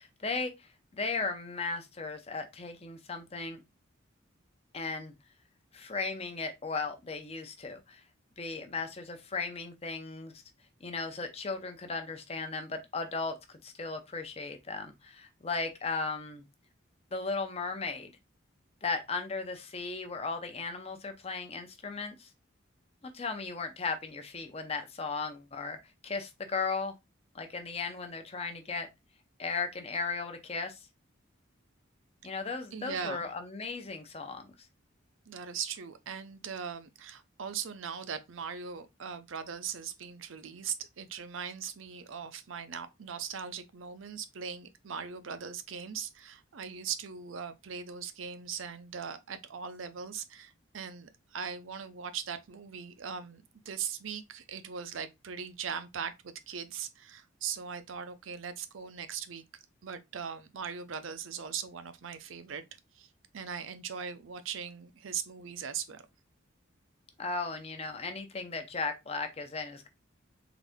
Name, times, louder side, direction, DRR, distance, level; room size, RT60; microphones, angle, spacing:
voice 1, 0.0-3.6 4.7-5.1 5.7-8.0 8.4-10.4 10.8-16.4 17.1-18.1 18.8-22.3 23.0-25.8 26.0-26.9 27.3-28.9 29.4-30.8 32.2-34.5 67.2-69.9, left 4 dB, 30° left, 0.6 m, -36 dB
voice 2, 32.7-33.3 35.3-59.4 59.8-62.6 62.9-66.0, right 7 dB, 80° right, 0.6 m, -40 dB
3.9 x 2.6 x 3.5 m
head